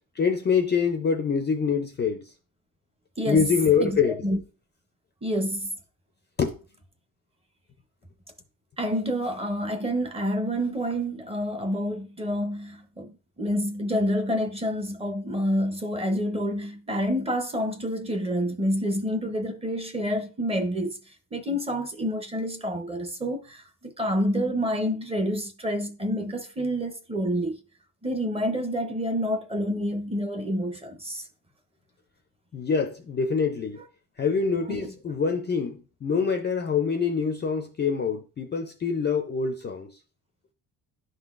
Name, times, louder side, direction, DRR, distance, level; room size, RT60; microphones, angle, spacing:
voice 1, 0.2-2.2 3.3-4.2 6.4-6.6 32.5-33.8 34.2-39.9, left 6 dB, 30° left, 0.4 m, -25 dB
voice 2, 3.8-4.4 5.2-5.7 8.8-20.9 21.3-27.6 28.0-31.2 34.7-34.9, equal, 15° right, 0.6 m, -28 dB
11.0 x 3.8 x 2.4 m
cardioid pair, 165°, 40 cm